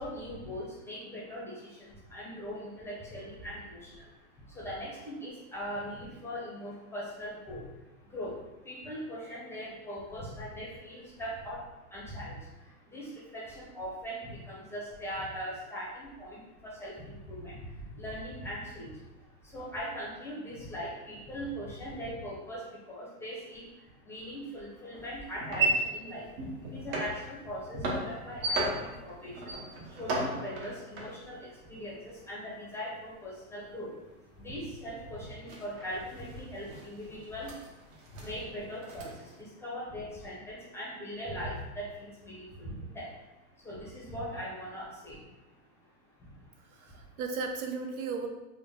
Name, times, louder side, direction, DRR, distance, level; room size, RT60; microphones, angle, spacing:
voice 1, 0.0-47.1, equal, 5° left, -6 dB, 0.6 m, -41 dB
sound 1, 24.9-32.7 33.0-39.4, right 2 dB, 35° right, 0.7 m, -36 dB
voice 2, 46.6-48.3, right 4 dB, 80° right, 4 dB, 0.7 m, -36 dB
3.6 x 2.1 x 3.6 m, 1.0 s
supercardioid pair, 140°, 43 cm